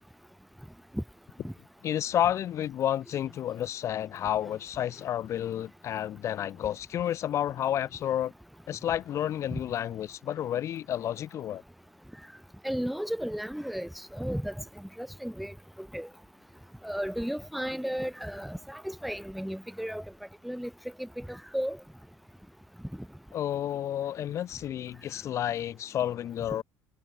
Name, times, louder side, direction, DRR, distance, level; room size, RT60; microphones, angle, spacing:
voice 1, 1.8-8.3 8.7-11.6 23.3-26.6, left 11 dB, 45° left, 1.1 m, -31 dB
voice 2, 12.6-16.1 16.8-20.0 20.4-20.7 21.0-21.8, equal, ahead, 0.8 m, -34 dB
cardioid pair, 130°, 7 cm